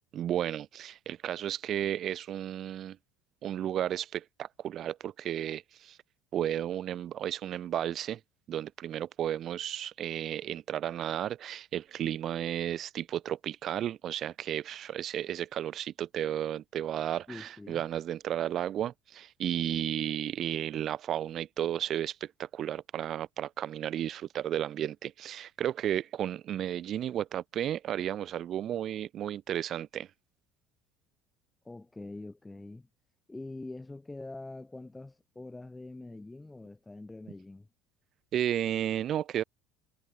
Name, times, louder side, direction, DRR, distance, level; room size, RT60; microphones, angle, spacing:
voice 1, 0.1-3.0 3.4-6.0 6.3-8.2 8.5-30.1 38.3-39.4, right 11 dB, 50° right, 0.9 m, -33 dB
voice 2, 17.3-17.8 31.6-32.9 33.3-37.7, left 2 dB, 10° left, 5.9 m, -44 dB
supercardioid pair, 90°, 0 cm